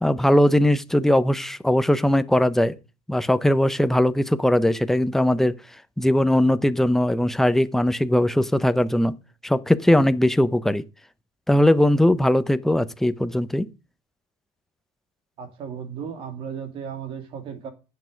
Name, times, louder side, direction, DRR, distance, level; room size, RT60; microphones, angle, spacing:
voice 1, 0.0-2.7 3.1-5.5 6.0-9.2 9.4-10.8 11.5-13.7, left 1 dB, 5° left, 0.6 m, -20 dB
voice 2, 15.4-17.7, right 7 dB, 40° right, 2.6 m, -35 dB
11.0 x 8.5 x 5.0 m
cardioid pair, 155°, 14 cm